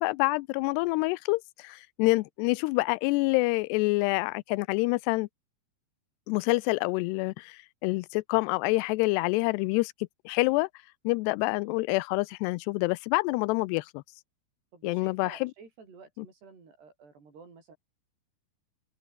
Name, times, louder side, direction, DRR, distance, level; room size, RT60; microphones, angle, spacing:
voice 1, 0.0-5.3 6.3-9.9 10.3-10.7 11.0-14.0 14.8-15.5 16.2-16.3, left 23 dB, 90° left, 2.7 m, -27 dB
voice 2, 14.7-17.8, right 5 dB, 80° right, 9.3 m, -51 dB
open air
omnidirectional pair, 4.7 m